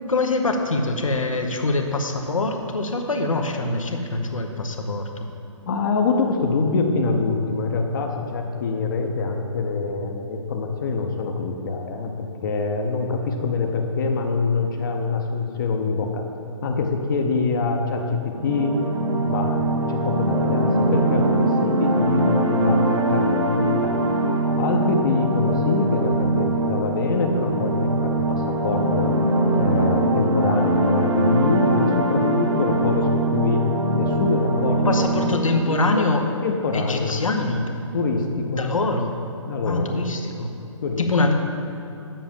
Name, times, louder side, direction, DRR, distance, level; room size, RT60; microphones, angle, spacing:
voice 1, 0.1-5.3 34.8-36.2 36.7-37.7 38.5-39.2 39.6-40.6 41.0-41.3, left 2 dB, 90° left, 4 dB, 1.0 m, -24 dB
voice 2, 5.7-16.2 16.6-18.0 18.4-18.7 19.2-24.0 24.6-29.1 29.6-33.6 33.9-35.0 35.7-36.0 36.4-37.2 37.9-38.6 39.4-40.0 40.8-41.0, left 4 dB, 40° left, 3 dB, 0.8 m, -24 dB
sound 1, 18.3-35.7, right 1 dB, 70° right, 1.0 m, -22 dB
7.4 x 5.1 x 7.1 m, 2.8 s
hypercardioid pair, 150°, 17 cm